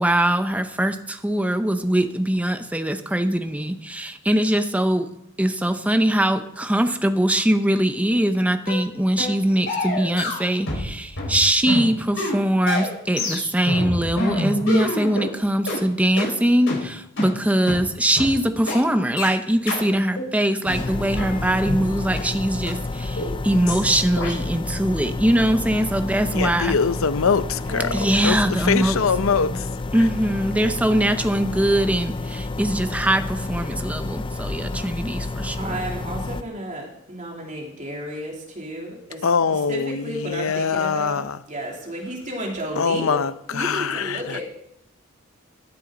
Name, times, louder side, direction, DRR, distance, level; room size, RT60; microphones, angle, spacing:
voice 1, 0.0-5.1 5.4-26.8 27.9-29.0 29.9-35.8, right 1 dB, 5° right, 0.7 m, -22 dB
sound 1, 8.7-8.8 9.2-9.4 9.7-10.9 11.2-15.3 15.7-15.8 16.2-16.3 16.7-16.8 17.2-17.3 17.7-17.8 18.2-18.3 18.7-18.8 19.2-19.3 19.7-19.8 20.2-20.3 20.7-21.8 22.2-22.3 22.7-22.8 23.2-23.3 23.7-23.8 24.2-24.3, left 2 dB, 65° left, 5.1 m, -27 dB
sound 2, 20.7-36.4, left 2 dB, 25° left, 0.4 m, -30 dB
voice 2, 23.5-24.2 27.7-28.1 35.6-39.3 39.7-43.2 43.5-44.4, equal, 40° right, 3.0 m, -33 dB
voice 3, 26.3-27.9 28.2-29.7 39.2-41.4 42.8-44.4, left 5 dB, 80° left, 0.6 m, -23 dB
16.0 x 10.0 x 3.9 m
head